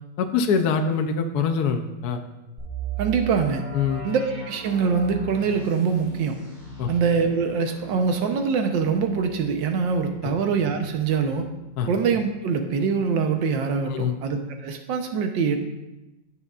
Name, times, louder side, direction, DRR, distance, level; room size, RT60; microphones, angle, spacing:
voice 1, 0.2-2.2 3.7-4.0 6.8-6.9 11.8-11.9 13.9-14.1, left 6 dB, 65° left, 5 dB, 1.1 m, -24 dB
sound 1, 2.6-12.3 12.6-12.7 13.3-13.5, right 4 dB, 40° right, 3.5 m, -38 dB
voice 2, 3.0-3.6 4.0-6.4 6.9-11.5 11.9-15.6, right 5 dB, 80° right, 5 dB, 1.6 m, -24 dB
15.5 x 6.8 x 2.5 m, 1.0 s
omnidirectional pair, 2.0 m